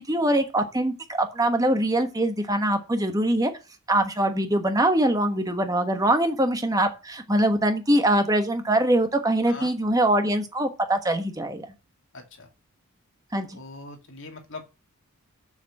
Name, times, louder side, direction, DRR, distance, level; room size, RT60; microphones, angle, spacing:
voice 1, 0.0-3.5 3.9-11.7 13.3-13.6, right 1 dB, 15° right, 6 dB, 1.3 m, -23 dB
voice 2, 12.1-12.5 13.5-14.9, left 3 dB, 55° left, 4 dB, 2.4 m, -42 dB
7.2 x 7.1 x 7.5 m, 0.29 s
head